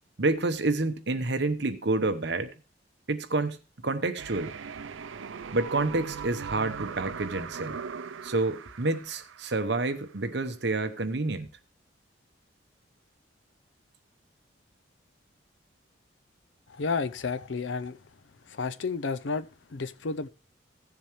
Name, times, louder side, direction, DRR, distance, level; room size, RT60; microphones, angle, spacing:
voice 1, 0.2-2.5 3.1-4.5 5.5-7.8 8.2-11.5, right 2 dB, 60° right, 1.0 m, -28 dB
sound 1, 4.2-10.1, right 6 dB, 85° right, 0.5 m, -40 dB
voice 2, 16.7-18.0 18.5-20.3, left 4 dB, 75° left, 0.6 m, -31 dB
16.0 x 7.1 x 3.1 m
head